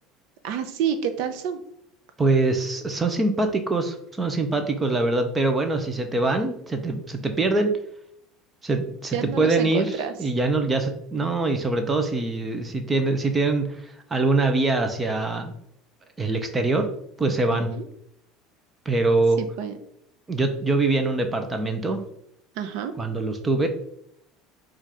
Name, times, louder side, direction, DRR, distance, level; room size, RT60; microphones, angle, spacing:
voice 1, 0.4-1.6 9.1-10.1 17.5-17.9 19.4-19.8 22.5-22.9, right 8 dB, 60° right, 8 dB, 0.6 m, -29 dB
voice 2, 2.2-7.7 8.6-15.5 16.2-16.9 17.2-17.7 18.9-19.4 20.3-22.0 23.0-23.7, right 2 dB, 15° right, 6 dB, 0.5 m, -23 dB
4.2 x 2.5 x 4.7 m, 0.71 s
cardioid pair, 170°, 0 cm